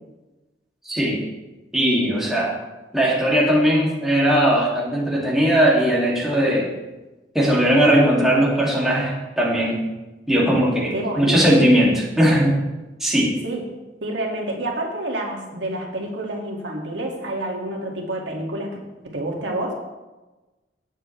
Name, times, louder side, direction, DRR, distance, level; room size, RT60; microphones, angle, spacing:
voice 1, 0.8-1.2 1.7-2.6 2.9-6.7 7.3-9.9 10.3-12.6 13.0-13.4, equal, ahead, -5 dB, 2.5 m, -19 dB
voice 2, 10.9-11.4 13.4-13.6 14.0-18.8 19.0-19.7, right 1 dB, 80° right, -1 dB, 2.2 m, -28 dB
16.5 x 8.1 x 3.3 m, 1.1 s
head